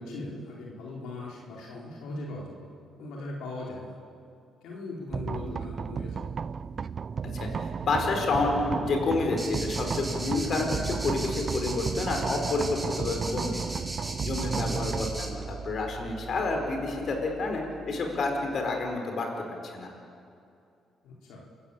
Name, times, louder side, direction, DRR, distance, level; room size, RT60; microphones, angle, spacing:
voice 1, 0.0-2.5 3.0-4.0 4.6-6.3 14.5-14.9 21.0-21.5, left 2 dB, 90° left, -3 dB, 4.2 m, -39 dB
sound 1, 5.1-19.0, right 6 dB, 45° right, 0.5 m, -34 dB
voice 2, 7.4-13.8 14.2-19.9, left 3 dB, 55° left, 2 dB, 4.9 m, -29 dB
sound 2, 9.4-15.3, right 2 dB, 10° right, 4.7 m, -37 dB
29.0 x 14.5 x 8.7 m, 2.5 s
cardioid pair, 90°, 0 cm